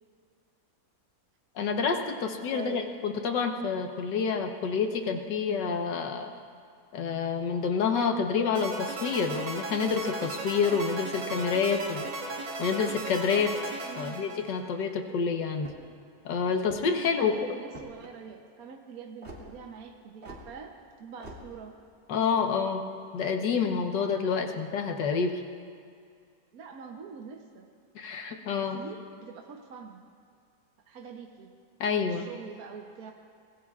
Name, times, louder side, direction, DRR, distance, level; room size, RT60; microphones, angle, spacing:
voice 1, 1.6-6.3 6.9-12.0 12.6-13.5 14.0-15.7 16.3-17.3 22.1-22.9 23.1-25.3 28.0-28.8 31.8-32.3, left 5 dB, 80° left, 4 dB, 1.7 m, -28 dB
voice 2, 2.2-2.8 13.9-14.2 17.0-21.7 24.4-24.6 26.5-27.7 28.6-30.0 30.9-31.6 32.0-33.1, right 6 dB, 60° right, 2 dB, 1.2 m, -44 dB
sound 1, 8.6-14.9, right 2 dB, 90° right, 2.4 m, -36 dB
sound 2, 15.5-16.0 16.6-17.1 17.7-18.1 19.2-19.4 20.2-20.5 21.2-21.4, right 1 dB, 35° right, 2.6 m, -45 dB
25.5 x 20.5 x 2.4 m, 2.2 s
omnidirectional pair, 1.9 m